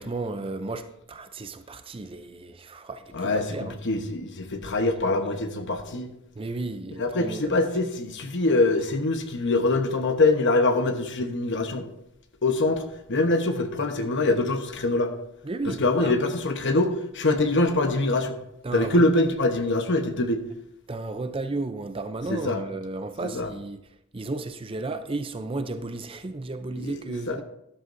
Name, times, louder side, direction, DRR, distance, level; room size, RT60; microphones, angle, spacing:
voice 1, 0.0-3.8 6.3-7.6 15.4-16.1 18.6-19.0 20.9-23.8 24.1-27.4, right 2 dB, 25° right, 0.5 m, -33 dB
voice 2, 3.1-6.1 7.0-11.9 12.4-15.1 15.7-18.3 18.7-20.4 22.3-22.6 23.2-23.5 26.8-27.4, left 2 dB, 55° left, 1.0 m, -24 dB
12.5 x 11.0 x 2.6 m
head